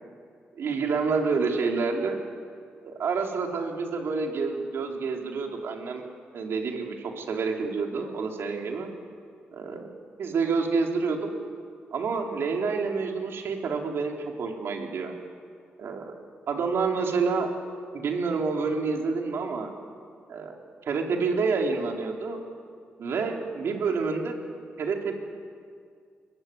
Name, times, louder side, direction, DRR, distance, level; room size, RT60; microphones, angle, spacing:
voice 1, 0.6-2.2 2.8-6.0 6.3-8.9 9.5-9.9 10.2-11.2 11.9-15.1 15.8-16.1 16.5-17.5 17.9-19.7 20.3-20.5 20.9-22.4 23.0-24.3 24.8-25.1, right 4 dB, 70° right, 1 dB, 4.2 m, -28 dB
24.0 x 23.0 x 9.7 m, 2.2 s
cardioid pair, 70°, 4 cm